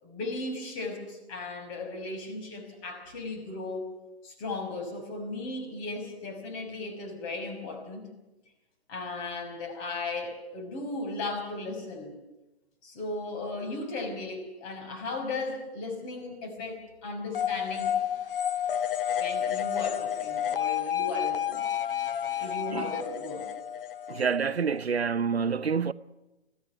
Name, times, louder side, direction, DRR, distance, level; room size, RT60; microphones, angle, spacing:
voice 1, 0.0-3.9 4.2-8.1 8.9-12.2 12.8-18.0 19.2-21.6 22.4-23.5, left 2 dB, 30° left, 5.7 m, -36 dB
sound 1, 17.3-24.8, left 10 dB, 60° left, 1.2 m, -30 dB
voice 2, 24.1-25.9, right 6 dB, 80° right, 0.8 m, -27 dB
22.0 x 15.5 x 9.7 m
figure-of-eight pair, 120°, 32 cm